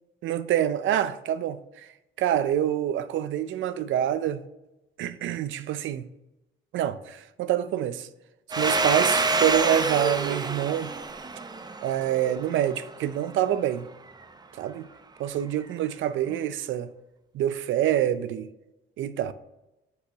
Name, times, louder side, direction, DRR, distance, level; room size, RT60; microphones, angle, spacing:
voice 1, 0.2-1.9 2.2-4.4 5.0-6.1 6.7-8.1 8.6-10.9 11.8-13.9 14.6-14.8 15.2-16.9 17.3-18.5 19.0-19.3, right 11 dB, 75° right, 0.5 m, -26 dB
Domestic sounds home sounds, 8.5-12.9, right 3 dB, 20° right, 0.5 m, -27 dB
6.9 x 4.7 x 3.5 m
cardioid pair, 90°, 20 cm